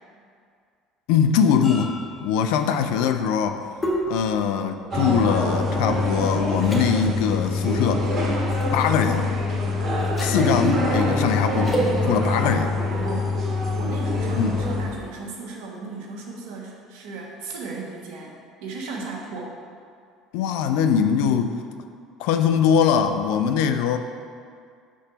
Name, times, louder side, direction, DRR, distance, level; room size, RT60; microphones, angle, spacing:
voice 1, 1.1-1.9 2.2-3.6 4.1-8.1 8.7-9.3 10.2-12.8 14.3-14.6 20.3-21.6 22.2-24.0, left 7 dB, 70° left, 8 dB, 0.4 m, -22 dB
sound 1, 1.6-6.1 6.6-6.8 8.5-8.7 10.0-10.4 11.6-11.9, right 1 dB, 25° left, 1.6 m, -31 dB
sound 2, 4.9-14.9, left 2 dB, 40° right, 1.8 m, -24 dB
voice 2, 13.0-13.3 13.7-18.3 18.6-19.6, right 3 dB, 70° right, -1 dB, 1.1 m, -35 dB
6.2 x 3.9 x 5.7 m, 2.2 s
hypercardioid pair, 65°, 0 cm